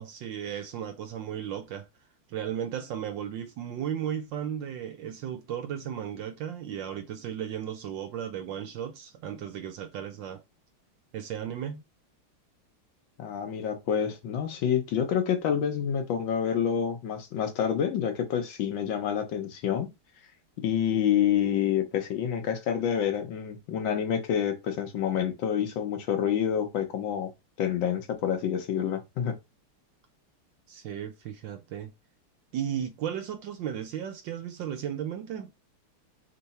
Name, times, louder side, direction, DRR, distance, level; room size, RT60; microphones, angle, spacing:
voice 1, 0.0-1.9 2.3-10.4 11.1-11.8 30.7-31.9 32.5-35.5, right 9 dB, 70° right, 1.1 m, -35 dB
voice 2, 13.2-19.9 20.6-27.3 27.6-29.4, left 8 dB, 70° left, 1.4 m, -28 dB
3.8 x 3.3 x 4.1 m
omnidirectional pair, 2.4 m